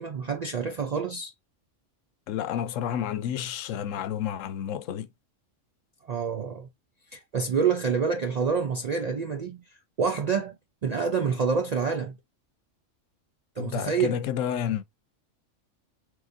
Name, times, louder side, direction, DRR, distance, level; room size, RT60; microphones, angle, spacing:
voice 1, 0.0-1.3 6.1-6.7 7.1-9.6 10.0-10.5 10.8-12.2 13.6-14.2, right 5 dB, 70° right, 0.3 m, -27 dB
voice 2, 2.3-5.1 13.6-14.8, left 9 dB, 80° left, 1.0 m, -30 dB
4.7 x 3.2 x 2.5 m
omnidirectional pair, 1.3 m